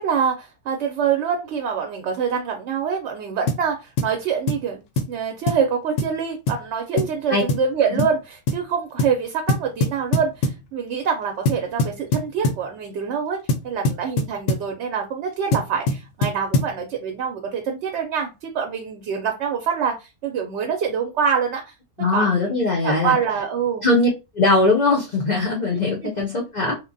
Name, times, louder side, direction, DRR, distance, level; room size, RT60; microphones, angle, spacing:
voice 1, 0.0-4.8 5.1-13.4 13.6-21.7 22.1-22.5 22.8-23.8 25.7-25.8, right 6 dB, 65° right, 3 dB, 0.8 m, -25 dB
sound 1, 3.5-3.7 4.0-4.2 4.5-4.7 5.0-5.1 5.5-5.7 6.0-6.2 6.5-6.6 7.0-7.2 7.5-7.7 8.0-8.2 8.5-8.6 9.0-9.2 9.5-10.6 11.5-12.7 13.5-14.7 15.5-16.8, left 2 dB, 70° left, 0.8 m, -23 dB
voice 2, 22.0-23.2 23.8-24.1 24.3-26.8, left 2 dB, 55° left, 0 dB, 0.5 m, -20 dB
3.1 x 2.1 x 2.5 m, 0.26 s
omnidirectional pair, 1.4 m